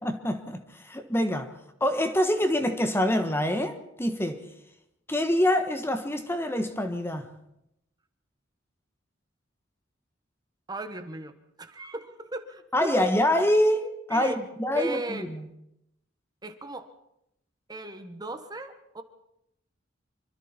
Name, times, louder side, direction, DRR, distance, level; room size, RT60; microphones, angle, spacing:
voice 1, 0.0-1.5 1.8-4.4 5.1-7.3 12.7-15.4, left 1 dB, 10° left, 1.4 m, -26 dB
voice 2, 10.7-11.3 11.6-13.1 14.1-14.4 14.7-15.3 16.4-16.9 17.7-19.0, right 2 dB, 20° right, 1.4 m, -36 dB
26.0 x 25.0 x 4.5 m
head